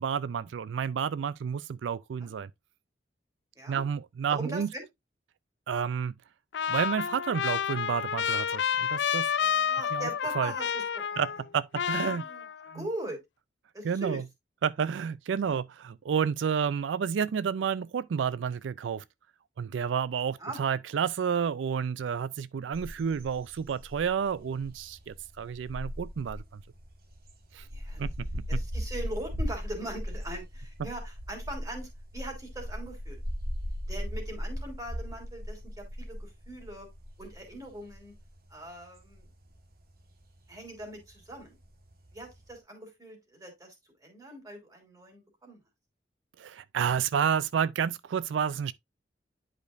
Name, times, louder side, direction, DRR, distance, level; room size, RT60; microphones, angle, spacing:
voice 1, 0.0-2.5 3.7-4.7 5.7-6.1 6.7-9.3 9.9-10.1 10.4-10.5 11.2-11.3 11.5-12.2 12.7-12.8 13.8-14.2 14.6-19.0 19.6-26.4 27.5-27.7 28.0-28.3 28.5-28.6 46.4-48.7, right 7 dB, 85° right, 0.4 m, -30 dB
voice 2, 4.3-4.8 9.1-11.2 12.1-12.5 12.7-13.2 13.7-14.2 15.4-15.6 20.4-20.6 27.7-28.0 28.5-33.2 33.8-36.9 37.2-38.1 38.5-39.3 40.5-41.6 42.1-43.7 44.0-45.6, right 1 dB, 20° right, 3.0 m, -41 dB
Trumpet, 6.5-11.5 11.7-12.8, left 8 dB, 70° left, 0.4 m, -30 dB
sound 1, 22.7-42.5, equal, 55° right, 1.4 m, -38 dB
10.5 x 5.1 x 2.5 m
head